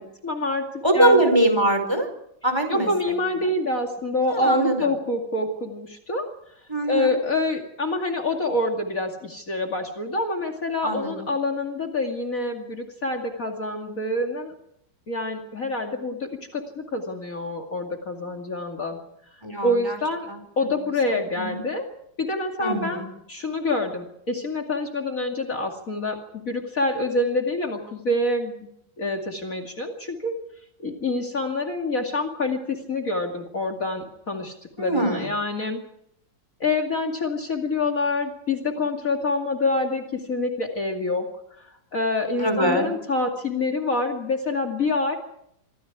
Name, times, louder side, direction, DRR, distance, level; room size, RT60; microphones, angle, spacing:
voice 1, 0.0-0.7 0.9-1.4 2.7-6.3 6.9-14.5 15.1-19.0 19.6-20.3 20.6-21.9 22.2-23.0 23.3-26.2 26.4-28.5 29.0-30.3 30.8-35.8 36.6-41.3 41.6-45.2, left 2 dB, 45° left, 3 dB, 2.8 m, -26 dB
voice 2, 0.8-2.1 2.4-2.9 4.2-4.8 6.7-7.1 10.8-11.3 19.4-20.0 20.3-20.4 21.4-21.6 22.6-23.1 34.8-35.3 42.4-42.9, right 1 dB, 15° right, 8 dB, 4.9 m, -22 dB
26.0 x 24.5 x 4.8 m, 0.74 s
omnidirectional pair, 2.1 m